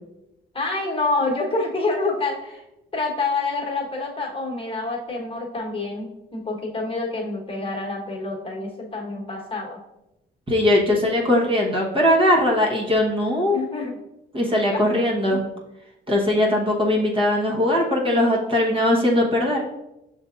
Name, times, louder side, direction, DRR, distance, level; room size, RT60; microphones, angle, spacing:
voice 1, 0.5-2.6 2.9-9.8 13.5-14.0 15.3-15.4, left 3 dB, 25° left, -2 dB, 1.2 m, -27 dB
voice 2, 10.5-13.6 14.3-15.4 16.1-19.6, left 1 dB, 25° right, -3 dB, 1.1 m, -20 dB
6.3 x 3.4 x 2.5 m, 0.92 s
cardioid pair, 90°, 20 cm